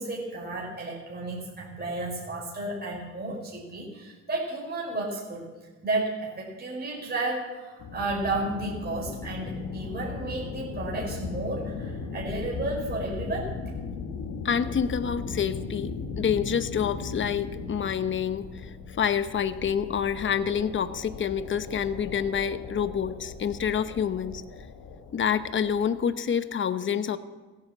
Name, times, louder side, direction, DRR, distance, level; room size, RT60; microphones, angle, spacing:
voice 1, 0.0-5.5 5.8-13.5, right 2 dB, 35° right, -3 dB, 4.9 m, -32 dB
sound 1, 7.8-26.0, left 5 dB, 80° left, 1.9 m, -37 dB
voice 2, 14.4-24.4 25.1-27.2, left 7 dB, 40° left, 12 dB, 0.9 m, -27 dB
16.0 x 9.9 x 7.5 m, 1.3 s
cardioid pair, 90°, 30 cm